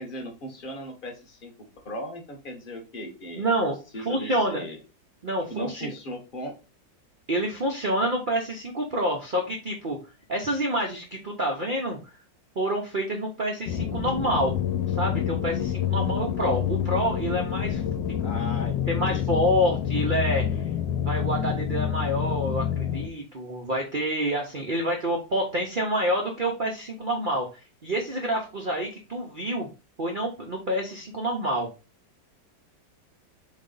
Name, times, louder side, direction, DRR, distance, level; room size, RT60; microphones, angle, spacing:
voice 1, 0.0-1.5 1.8-3.5 3.9-4.8 5.5-6.5 18.2-19.2, equal, 40° left, 3 dB, 0.9 m, -37 dB
voice 2, 3.4-4.6 5.2-5.9 7.3-10.0 10.3-12.0 12.6-14.5 15.0-17.8 18.2-18.3 18.9-20.6 21.0-27.5 27.8-29.7 30.0-31.7, equal, 65° right, 1 dB, 0.4 m, -27 dB
sound 1, 13.7-23.1, left 9 dB, 90° left, 1.4 m, -27 dB
4.0 x 3.2 x 3.8 m, 0.31 s
omnidirectional pair, 2.0 m